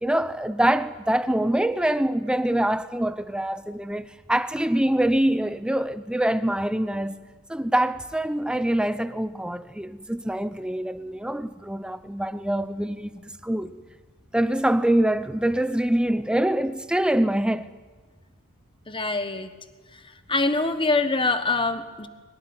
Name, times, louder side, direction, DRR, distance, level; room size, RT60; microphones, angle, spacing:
voice 1, 0.0-7.2 7.5-13.8 14.3-17.7, right 1 dB, 5° right, 0.7 m, -24 dB
voice 2, 18.9-19.5 20.3-22.1, left 3 dB, 25° left, 1.3 m, -24 dB
23.0 x 18.5 x 9.7 m
head